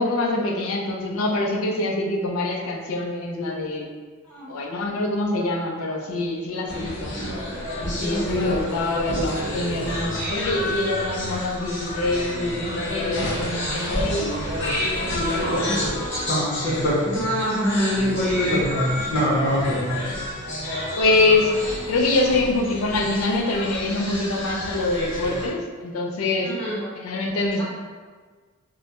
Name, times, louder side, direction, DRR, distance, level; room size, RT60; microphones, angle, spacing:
voice 1, 0.0-3.9 4.5-7.1 7.8-14.4 15.0-16.1 21.0-21.5 21.9-26.5 27.0-27.6, left 2 dB, 85° left, 1 dB, 0.4 m, -25 dB
sound 1, 6.7-25.5, equal, 55° left, 0.7 m, -28 dB
voice 2, 8.0-8.5 15.6-15.9 17.0-19.6 26.4-26.9 27.6-27.7, equal, 5° left, -10 dB, 0.7 m, -26 dB
2.2 x 2.0 x 2.8 m, 1.5 s
head